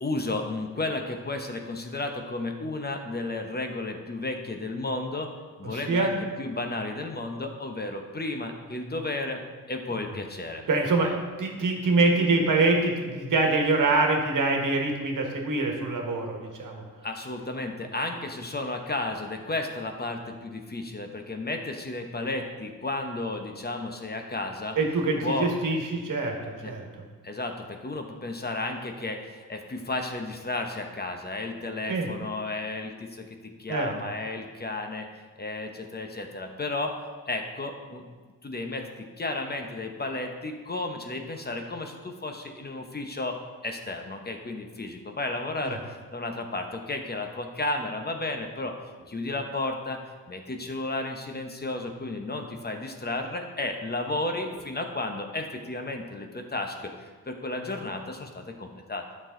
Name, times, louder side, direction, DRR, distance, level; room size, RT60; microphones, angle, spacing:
voice 1, 0.0-5.3 5.6-9.4 9.7-10.6 11.0-11.1 17.0-24.8 25.2-25.5 26.6-26.7 27.2-35.1 35.4-37.0 37.3-38.1 38.4-38.9 39.2-48.8 49.1-50.0 50.3-59.0, left 2 dB, 30° left, 4 dB, 0.9 m, -33 dB
voice 2, 5.6-6.2 10.7-11.1 11.4-16.8 24.7-26.4 26.6-26.8 31.9-32.1 33.7-33.9 45.6-45.8, right 3 dB, 70° right, 1 dB, 1.5 m, -25 dB
9.0 x 6.3 x 3.8 m, 1.4 s
cardioid pair, 70°, 33 cm